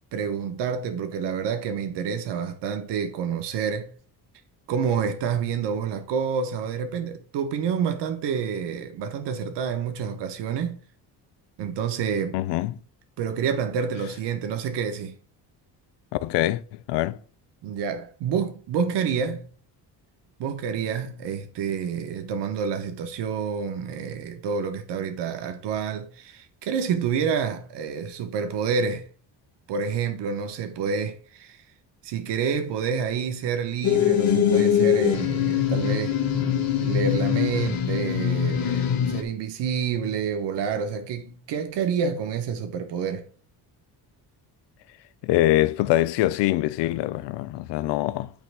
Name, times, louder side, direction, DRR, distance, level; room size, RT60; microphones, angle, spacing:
voice 1, 0.1-3.9 4.7-10.8 11.6-12.4 13.2-15.2 17.6-19.5 20.4-29.0 29.7-31.6 32.0-36.2 36.8-43.2, right 6 dB, 80° right, 1.2 m, -28 dB
voice 2, 12.3-12.7 16.2-17.2 45.2-48.3, left 15 dB, 85° left, 0.6 m, -24 dB
sound 1, 33.8-39.2, left 9 dB, 55° left, 1.3 m, -23 dB
8.7 x 3.2 x 6.0 m
cardioid pair, 135°, 41 cm